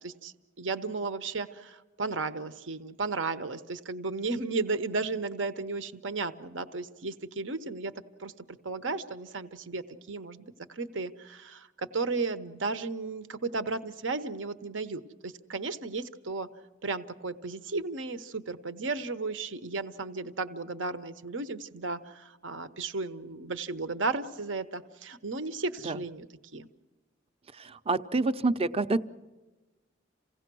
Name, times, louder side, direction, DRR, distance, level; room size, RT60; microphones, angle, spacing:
voice 1, 0.0-7.9 8.2-16.5 16.8-26.3 26.5-26.7, right 3 dB, 75° right, 10 dB, 1.0 m, -34 dB
voice 2, 27.5-29.0, right 3 dB, 30° right, 11 dB, 0.7 m, -28 dB
28.0 x 17.0 x 6.2 m, 1.2 s
head